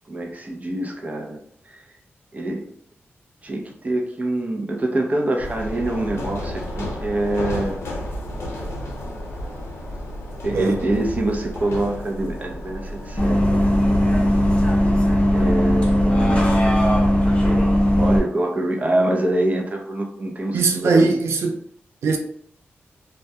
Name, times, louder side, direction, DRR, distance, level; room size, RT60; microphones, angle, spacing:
voice 1, 0.1-1.4 2.3-2.7 3.4-7.8 10.4-13.7 14.0-14.3 15.3-16.4 18.0-21.1, right 1 dB, 35° right, 0.5 m, -25 dB
sound 1, 5.4-14.6, left 1 dB, 80° left, 0.7 m, -32 dB
Bus, 13.2-18.2, equal, 25° left, 0.7 m, -18 dB
voice 2, 20.5-21.6 22.0-22.2, right 4 dB, 90° right, 0.4 m, -19 dB
2.2 x 2.1 x 2.7 m
cardioid pair, 75°, 4 cm